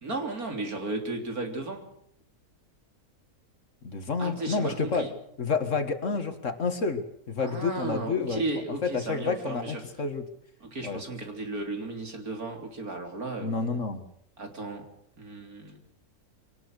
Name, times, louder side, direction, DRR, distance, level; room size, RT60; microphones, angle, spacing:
voice 1, 0.0-1.9 4.2-5.1 7.4-9.8 10.6-13.6 14.4-14.9 15.2-15.8, right 2 dB, 70° right, 4 dB, 3.9 m, -34 dB
voice 2, 3.8-5.1 5.4-7.0 7.3-8.4 8.8-10.3 10.8-11.0 13.4-14.0, left 4 dB, 55° left, 9 dB, 2.1 m, -29 dB
23.5 x 18.5 x 6.5 m, 0.71 s
omnidirectional pair, 1.6 m